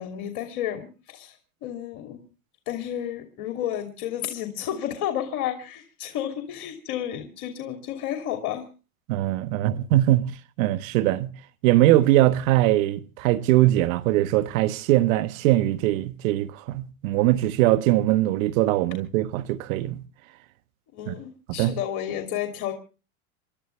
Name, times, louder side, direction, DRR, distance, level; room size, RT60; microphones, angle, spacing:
voice 1, 0.0-2.2 2.7-8.7 20.9-22.7, left 10 dB, 55° left, 3.0 m, -31 dB
voice 2, 9.1-10.3 10.6-11.3 11.6-20.0 21.1-21.2 21.5-21.8, right 15 dB, 65° right, 1.5 m, -21 dB
29.5 x 12.5 x 3.4 m
supercardioid pair, 120°, 44 cm